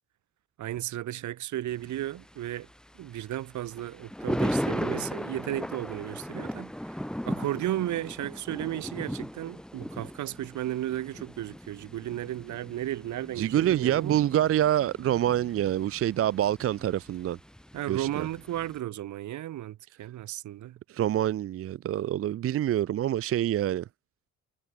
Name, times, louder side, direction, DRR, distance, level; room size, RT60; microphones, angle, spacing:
voice 1, 0.6-2.7 3.0-7.0 7.3-14.2 17.7-20.8, right 13 dB, 70° right, 1.3 m, -34 dB
Thunder, 1.7-18.8, equal, ahead, 6.7 m, -37 dB
voice 2, 13.4-17.4 17.9-18.3 20.9-23.9, right 12 dB, 50° right, 0.5 m, -26 dB
cardioid pair, 90°, 30 cm